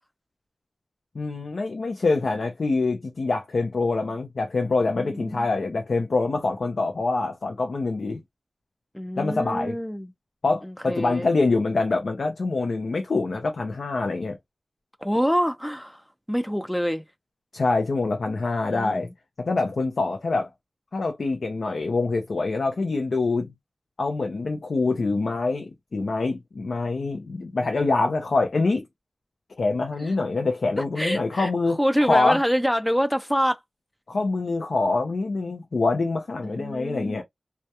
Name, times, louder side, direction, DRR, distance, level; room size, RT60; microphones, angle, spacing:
voice 1, 1.1-8.2 9.2-9.8 10.4-14.4 17.5-19.1 19.4-20.5 20.9-23.5 24.0-28.8 29.6-31.8 32.1-32.4 34.1-37.2, left 3 dB, 80° left, 0.5 m, -25 dB
voice 2, 5.0-5.5 8.9-10.1 10.9-11.3 15.0-16.0 16.3-17.0 18.7-19.1 30.8-31.5 31.8-33.6 36.4-37.2, equal, 5° left, 0.4 m, -26 dB
2.2 x 2.1 x 2.8 m
cardioid pair, 45°, 0 cm